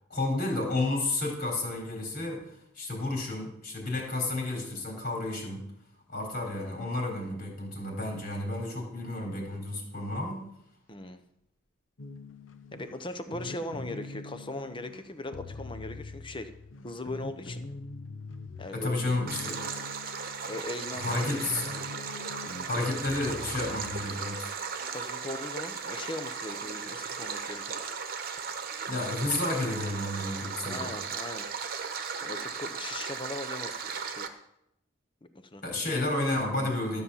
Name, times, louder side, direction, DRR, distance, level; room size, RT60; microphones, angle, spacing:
voice 1, 0.1-2.5 2.8-5.6 6.1-10.4 18.7-19.6 20.9-21.7 22.7-24.5 28.9-30.9 35.6-37.0, left 2 dB, 55° left, 0 dB, 3.9 m, -31 dB
voice 2, 10.9-11.2 12.7-16.5 16.8-17.7 18.6-19.0 20.5-21.7 24.9-27.8 30.6-31.5 32.2-34.3 35.3-35.6, left 2 dB, 25° left, 9 dB, 0.8 m, -39 dB
sound 1, 12.0-24.0, left 2 dB, 80° left, 0.8 m, -43 dB
Stream, 19.3-34.3, right 6 dB, 50° right, 1.1 m, -36 dB
13.0 x 5.6 x 7.2 m, 0.77 s
head